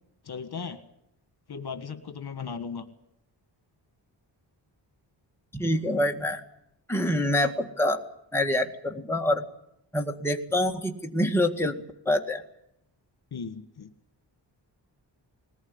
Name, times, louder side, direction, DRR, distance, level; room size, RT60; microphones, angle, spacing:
voice 1, 0.2-0.8 1.5-2.9 13.3-13.9, left 5 dB, 55° left, 9 dB, 1.7 m, -36 dB
voice 2, 5.5-6.4 6.9-8.0 8.3-9.4 9.9-11.8 12.1-12.4, left 1 dB, 5° left, 2 dB, 1.9 m, -26 dB
20.5 x 19.0 x 9.7 m, 0.77 s
wide cardioid pair, 125°, 45 cm